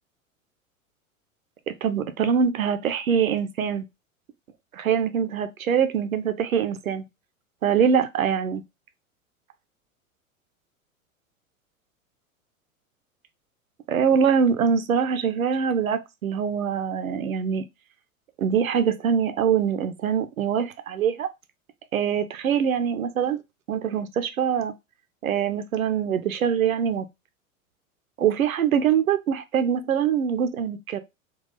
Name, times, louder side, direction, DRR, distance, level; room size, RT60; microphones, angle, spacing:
voice 1, 1.8-3.8 4.7-7.0 7.6-8.6 13.9-17.6 18.4-21.3 21.9-23.4 23.7-24.7 25.2-27.1 28.2-31.0, right 7 dB, 75° right, 0.7 m, -23 dB
3.8 x 2.3 x 3.9 m
figure-of-eight pair, 90°, 42 cm